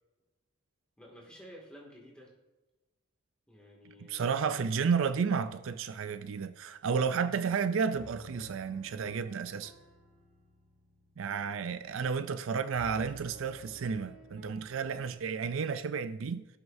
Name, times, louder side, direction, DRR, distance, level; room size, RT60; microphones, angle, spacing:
voice 1, 1.0-2.3 3.5-4.4, equal, 5° left, 2.2 m, -53 dB
voice 2, 4.1-9.7 11.2-16.5, right 6 dB, 70° right, 0.4 m, -32 dB
sound 1, 7.9-12.5 12.7-15.1, right 1 dB, 85° right, 2.6 m, -53 dB
17.0 x 6.3 x 2.7 m
head